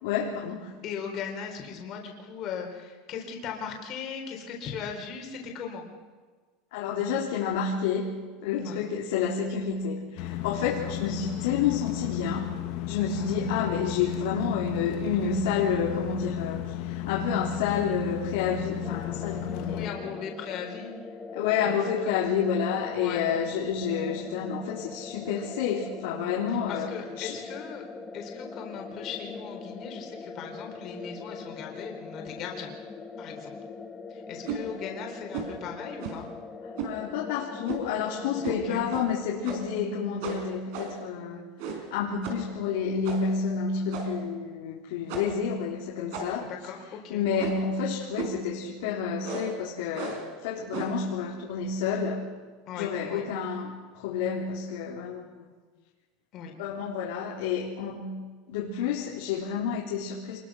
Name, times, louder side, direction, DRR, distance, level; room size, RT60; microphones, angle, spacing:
voice 1, 0.0-0.7 6.7-8.1 8.4-12.5 12.9-20.1 21.3-26.9 27.2-27.4 36.8-41.4 41.7-46.5 47.1-52.2 52.8-55.5 56.6-58.1 58.5-60.4, left 6 dB, 70° left, -3 dB, 3.8 m, -29 dB
voice 2, 0.8-5.8 8.6-8.8 10.6-10.9 13.2-13.4 19.7-20.9 21.6-21.7 22.1-22.2 23.0-23.3 26.7-27.8 28.1-32.7 33.2-33.5 34.1-36.3 38.5-38.8 46.4-47.2 52.7-53.2 56.3-56.5, left 7 dB, 35° left, 2 dB, 4.1 m, -38 dB
sound 1, 10.2-19.9, left 13 dB, 50° left, 1.4 m, -34 dB
sound 2, 18.8-38.8, left 4 dB, 10° left, 1.3 m, -42 dB
sound 3, 34.4-34.6 35.3-35.6 36.0-36.3 36.8-37.0 37.6-37.9 38.4-38.6 38.9-39.0 39.4-39.8 40.2-41.1 41.6-41.9 42.2-42.5 43.0-43.4 43.9-44.3 45.1-45.4 46.1-46.5 47.4-47.7 48.2-48.4 49.2-49.6 49.9-50.3 50.7-51.0, right 5 dB, 55° right, 4.8 m, -36 dB
27.5 x 21.5 x 6.4 m, 1.4 s
supercardioid pair, 170°, 0 cm